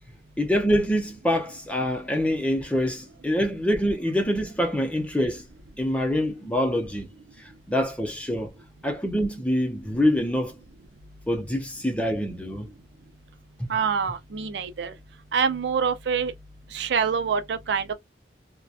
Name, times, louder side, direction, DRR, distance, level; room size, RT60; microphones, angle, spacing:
voice 1, 0.4-5.5 5.8-7.1 7.4-8.5 8.8-10.5 11.3-12.7, equal, 5° left, 0.5 m, -25 dB
voice 2, 13.7-14.9 15.3-16.3 16.7-17.9, right 6 dB, 75° right, 0.4 m, -25 dB
2.7 x 2.2 x 2.3 m
head